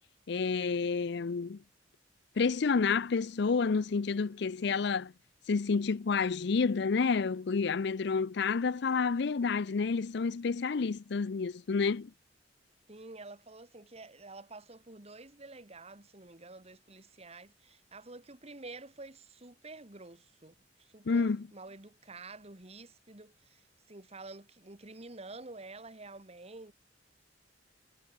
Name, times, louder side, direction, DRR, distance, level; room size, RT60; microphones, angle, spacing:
voice 1, 0.3-1.6 2.4-5.1 5.5-12.1 21.1-21.5, left 5 dB, 65° left, 0.5 m, -29 dB
voice 2, 12.9-26.7, right 3 dB, 35° right, 2.1 m, -49 dB
head